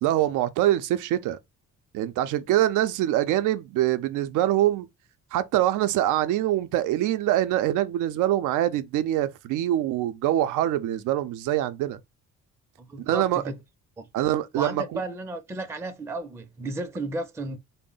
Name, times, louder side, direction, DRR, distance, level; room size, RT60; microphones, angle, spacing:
voice 1, 0.0-1.4 1.9-4.9 5.3-12.0 13.0-13.4 14.1-15.0, right 13 dB, 90° right, 0.5 m, -24 dB
voice 2, 12.8-13.6 14.0-14.1 14.6-17.6, right 2 dB, 10° right, 0.4 m, -33 dB
3.6 x 2.1 x 3.8 m
cardioid pair, 90°, 30 cm